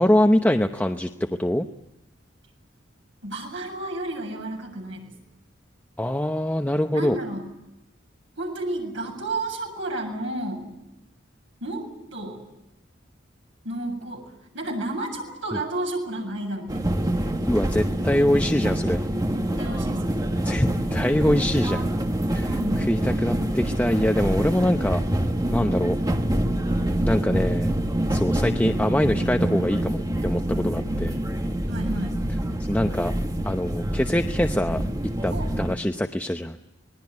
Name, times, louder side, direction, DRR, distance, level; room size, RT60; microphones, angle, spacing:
voice 1, 0.0-1.7 6.0-7.2 17.5-19.0 20.4-21.9 22.3-25.0 25.5-26.0 27.1-27.7 28.1-31.2 32.7-33.1 33.4-34.8 35.2-36.6, left 1 dB, 10° left, 5 dB, 0.9 m, -23 dB
voice 2, 3.2-5.2 6.9-7.5 8.4-10.7 11.6-12.4 13.6-17.0 19.3-20.2 22.4-22.9 31.7-32.2 35.3-35.5, right 1 dB, 80° right, 2 dB, 7.5 m, -32 dB
sound 1, 16.7-35.8, right 1 dB, 20° right, 1.6 m, -26 dB
26.0 x 20.5 x 9.5 m, 0.91 s
head